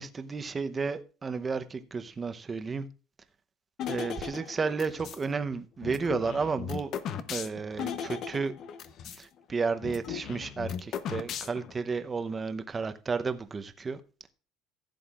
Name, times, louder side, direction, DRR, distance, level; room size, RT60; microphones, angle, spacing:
voice 1, 0.0-2.9 3.9-6.9 7.3-8.5 9.2-14.0, right 4 dB, 25° right, 0.8 m, -32 dB
sound 1, 3.8-5.2 5.8-9.2 9.5-9.6 9.8-11.8, left 8 dB, 50° left, 0.8 m, -37 dB
15.5 x 7.8 x 2.5 m
cardioid pair, 125°, 0 cm